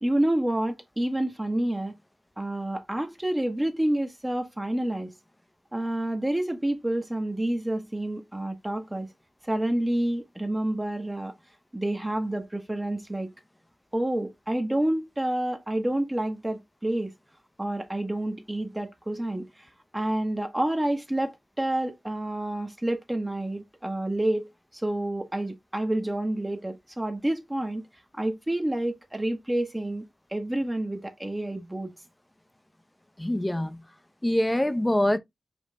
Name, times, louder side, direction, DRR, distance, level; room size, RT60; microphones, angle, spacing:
voice 1, 0.0-1.9 2.4-5.1 5.7-9.1 9.4-11.3 11.7-13.3 13.9-17.1 17.6-19.7 19.9-27.9 28.2-30.1 30.3-31.9, right 1 dB, 15° right, 1.0 m, -28 dB
voice 2, 33.2-33.8 34.2-35.2, left 1 dB, 15° left, 0.7 m, -24 dB
5.3 x 3.2 x 3.1 m
cardioid pair, 60°, 0 cm